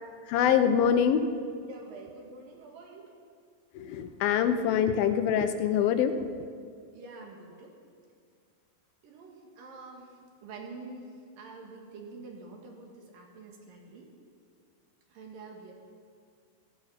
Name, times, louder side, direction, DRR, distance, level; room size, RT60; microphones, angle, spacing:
voice 1, 0.3-1.2 3.8-6.1, left 8 dB, 80° left, 9 dB, 2.6 m, -24 dB
voice 2, 1.7-3.1 6.9-7.7 9.0-14.1 15.1-15.7, right 3 dB, 70° right, 0 dB, 3.6 m, -47 dB
16.5 x 14.0 x 5.8 m, 2.2 s
omnidirectional pair, 4.2 m